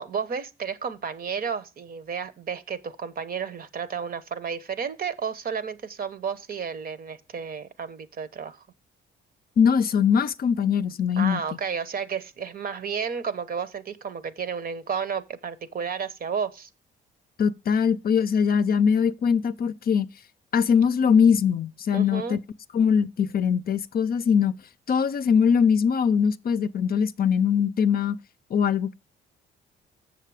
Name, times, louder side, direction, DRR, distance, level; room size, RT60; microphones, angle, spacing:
voice 1, 0.0-8.6 11.2-16.7 21.9-22.4, right 6 dB, 50° right, 0.9 m, -32 dB
voice 2, 9.6-11.4 17.4-20.1 20.5-22.4 22.7-24.5 24.9-28.2 28.5-28.9, left 7 dB, 50° left, 0.5 m, -22 dB
7.3 x 6.6 x 4.8 m
cardioid pair, 90°, 20 cm